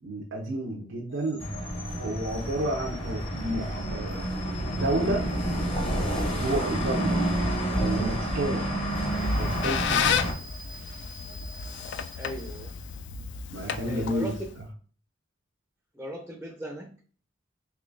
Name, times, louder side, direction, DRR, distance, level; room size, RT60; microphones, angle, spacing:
voice 1, 0.0-1.5 2.0-4.3 4.7-5.3 6.4-7.3 7.7-8.7 9.3-10.1 13.5-14.3, right 1 dB, 85° right, 0 dB, 0.6 m, -31 dB
sound 1, 1.1-13.2, left 2 dB, 80° left, 1.3 m, -47 dB
sound 2, 1.4-10.3, right 1 dB, 30° left, 0.7 m, -29 dB
Squeak, 9.1-14.6, left 7 dB, 65° left, 0.3 m, -32 dB
voice 2, 12.2-12.8 13.9-14.5 15.9-17.0, right 1 dB, 10° right, 1 dB, 0.4 m, -37 dB
3.6 x 3.0 x 2.5 m, 0.43 s
head